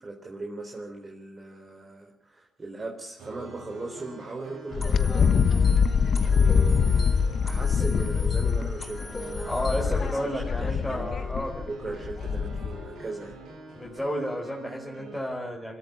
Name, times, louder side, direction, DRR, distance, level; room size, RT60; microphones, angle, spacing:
voice 1, 0.0-5.3 6.2-7.0 7.4-11.1 11.7-13.4, right 2 dB, 30° right, 2 dB, 4.0 m, -39 dB
sound 1, 3.2-15.2, right 2 dB, 75° right, 7.7 m, -45 dB
Wind, 4.7-12.9, left 6 dB, 50° left, 1.2 m, -24 dB
sound 2, 4.8-10.1, left 2 dB, 25° left, 4.7 m, -41 dB
voice 2, 9.5-11.6 13.7-15.8, equal, ahead, -2 dB, 4.7 m, -32 dB
24.5 x 13.5 x 8.3 m, 0.89 s
cardioid pair, 90°, 0 cm